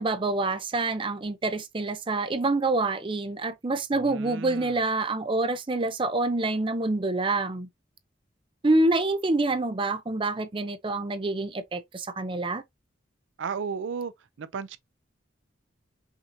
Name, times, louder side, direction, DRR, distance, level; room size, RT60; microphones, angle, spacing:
voice 1, 0.0-7.7 8.6-12.6, right 2 dB, 25° right, 0.5 m, -27 dB
voice 2, 4.0-4.8 13.4-14.1 14.4-14.8, right 6 dB, 80° right, 0.4 m, -34 dB
5.7 x 2.8 x 2.6 m
head